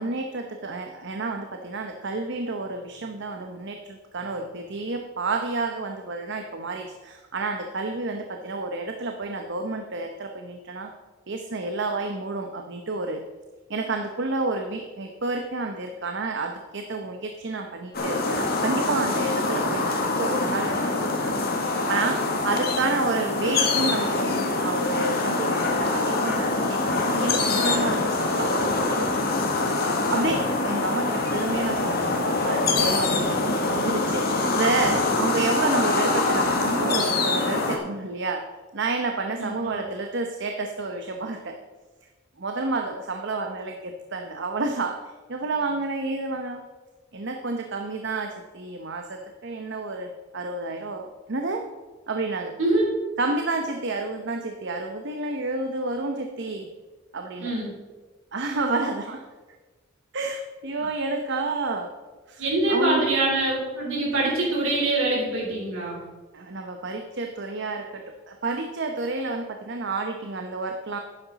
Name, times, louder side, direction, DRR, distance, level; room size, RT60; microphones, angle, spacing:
voice 1, 0.0-10.9 11.3-13.2 13.7-21.3 21.6-29.1 29.7-29.8 30.1-38.4 38.7-41.5 42.4-45.0 45.3-46.6 47.1-51.6 52.1-52.5 53.2-56.7 57.1-57.5 58.3-59.2 60.1-61.9 62.3-62.4 62.7-63.1 66.3-71.0, right 3 dB, 60° right, 4 dB, 0.8 m, -30 dB
sound 1, 17.9-37.8, left 3 dB, 50° left, 1.6 m, -24 dB
voice 2, 39.4-39.9 52.6-52.8 57.4-57.7 62.4-66.0, right 2 dB, 75° right, -4 dB, 4.0 m, -24 dB
11.5 x 9.7 x 4.1 m, 1.3 s
head